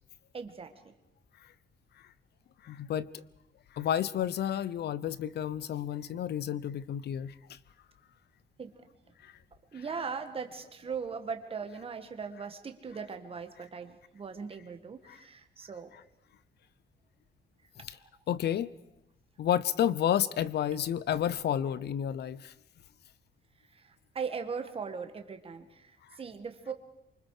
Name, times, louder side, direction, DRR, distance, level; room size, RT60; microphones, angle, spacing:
voice 1, 0.3-0.9 8.6-8.7 9.7-15.9 23.7-26.7, right 5 dB, 30° right, 1.7 m, -39 dB
voice 2, 2.6-3.2 3.7-7.6 9.2-9.3 15.1-15.2 17.8-18.0 18.3-18.7 19.4-22.5, left 10 dB, 60° left, 0.8 m, -31 dB
28.0 x 25.0 x 5.0 m
wide cardioid pair, 165°, 19 cm